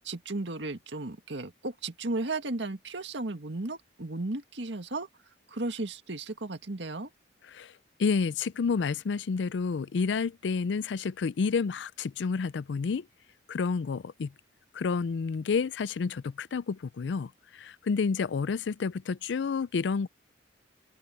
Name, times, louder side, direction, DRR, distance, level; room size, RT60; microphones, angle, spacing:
voice 1, 0.0-5.1 5.5-7.1, right 2 dB, 70° right, 1.9 m, -35 dB
voice 2, 8.0-13.1 13.5-14.3 14.7-20.1, left 5 dB, 70° left, 0.4 m, -30 dB
open air
head